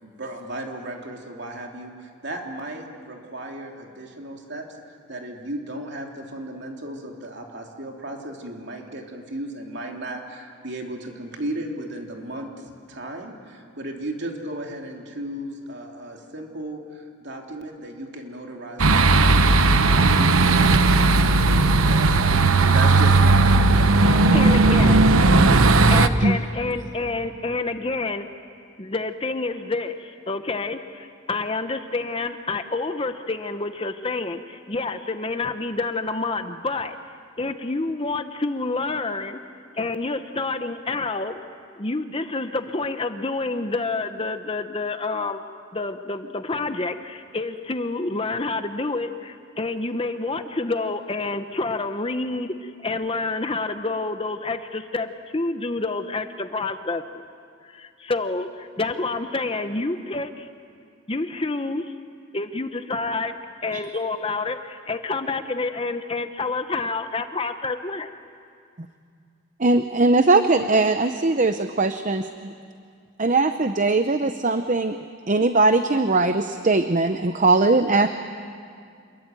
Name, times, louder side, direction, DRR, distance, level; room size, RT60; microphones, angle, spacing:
voice 1, 0.0-4.6 5.1-24.2, right 1 dB, 55° right, 1 dB, 3.3 m, -35 dB
sound 1, 18.8-26.1, right 3 dB, 85° right, 1.0 m, -16 dB
voice 2, 24.0-25.0 25.9-28.3 28.8-37.0 37.4-39.4 39.8-41.4 41.8-45.4 45.7-57.2 57.6-60.5 61.1-61.9 62.3-63.4 63.6-68.1, left 3 dB, 25° left, 8 dB, 0.9 m, -28 dB
voice 3, 69.6-72.5 73.2-75.0 75.3-78.1, right 3 dB, 35° right, 9 dB, 0.7 m, -20 dB
27.5 x 22.0 x 9.2 m, 2.3 s
head